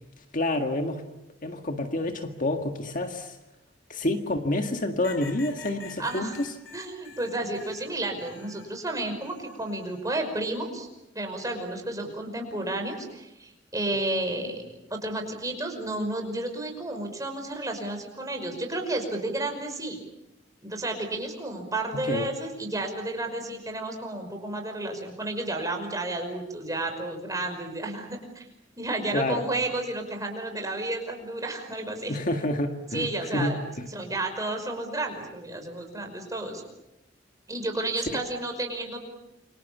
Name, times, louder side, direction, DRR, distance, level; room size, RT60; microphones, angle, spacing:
voice 1, 0.3-1.0 1.4-3.4 3.9-6.5 22.1-22.2 29.1-29.4 32.1-33.9 38.1-38.2, left 1 dB, 45° left, 5 dB, 1.9 m, -28 dB
sound 1, 5.0-8.7 9.2-10.0 11.4-11.8, left 5 dB, 85° left, 3.3 m, -47 dB
voice 2, 6.0-6.4 6.7-10.9 11.1-20.0 20.6-28.4 28.8-32.2 32.9-33.6 33.9-36.6 37.5-39.0, right 2 dB, 20° right, 4 dB, 5.5 m, -32 dB
29.0 x 25.5 x 7.2 m, 0.89 s
head